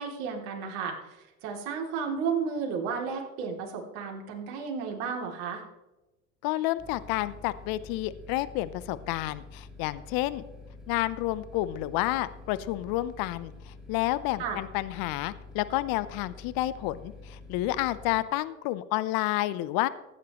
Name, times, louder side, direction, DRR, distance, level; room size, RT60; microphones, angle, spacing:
voice 1, 0.0-5.6 14.4-14.6, right 6 dB, 60° right, 1 dB, 3.0 m, -33 dB
voice 2, 6.4-10.4 10.9-19.9, left 16 dB, 55° left, 15 dB, 0.8 m, -30 dB
sound 1, 6.8-18.2, left 3 dB, ahead, 2.6 m, -47 dB
16.0 x 9.3 x 3.1 m, 1.0 s
hypercardioid pair, 85°, 43 cm